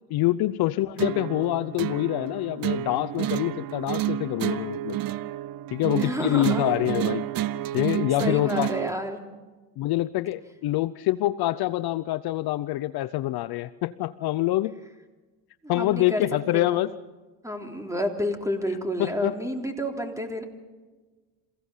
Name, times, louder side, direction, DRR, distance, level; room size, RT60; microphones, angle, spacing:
voice 1, 0.1-5.0 5.7-7.3 7.7-8.7 9.8-14.7 15.7-16.9 19.0-19.3, left 16 dB, 50° left, 14 dB, 0.7 m, -26 dB
sound 1, 1.0-9.0, right 13 dB, 45° right, 0.8 m, -30 dB
voice 2, 5.9-6.8 8.2-9.2 15.6-16.2 16.5-16.8 17.4-20.4, equal, 5° right, 3 dB, 3.5 m, -30 dB
28.0 x 16.5 x 5.6 m, 1.3 s
supercardioid pair, 90°, 48 cm